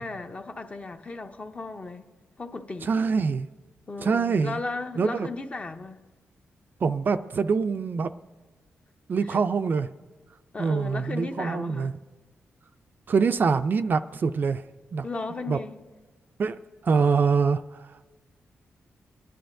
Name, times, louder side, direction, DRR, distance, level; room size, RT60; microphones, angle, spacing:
voice 1, 0.0-2.0 2.4-2.9 3.9-6.0 9.2-9.4 10.5-11.9 15.0-15.8, left 3 dB, 30° left, 0.6 m, -35 dB
voice 2, 2.8-3.5 4.0-4.6 5.0-5.3 6.8-8.1 9.1-9.9 10.6-11.9 13.1-14.6 14.9-15.0 15.5-15.6 16.4-16.6 16.8-17.9, right 5 dB, 45° right, 0.3 m, -24 dB
29.5 x 10.0 x 2.6 m
cardioid pair, 105°, 5 cm